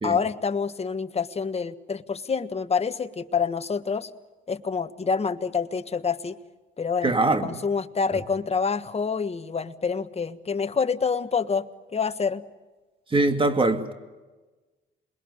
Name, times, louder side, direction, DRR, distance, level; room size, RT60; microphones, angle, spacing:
voice 1, 0.0-4.1 4.5-6.4 6.8-7.1 7.4-12.5, left 5 dB, 30° left, 1.4 m, -27 dB
voice 2, 7.0-7.6 13.1-13.9, right 2 dB, 25° right, 2.4 m, -22 dB
27.5 x 21.5 x 9.7 m
cardioid pair, 90°, 20 cm